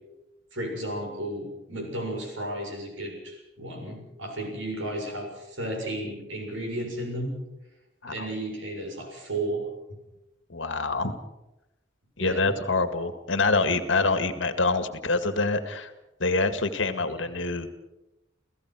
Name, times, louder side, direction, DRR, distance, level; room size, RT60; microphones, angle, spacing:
voice 1, 0.5-7.4 8.1-9.7 12.2-12.6 17.1-17.2, right 1 dB, 80° right, 3 dB, 7.1 m, -33 dB
voice 2, 10.5-11.1 12.2-15.9 16.2-17.7, left 3 dB, 75° left, 9 dB, 2.0 m, -26 dB
30.0 x 16.0 x 6.2 m, 0.95 s
head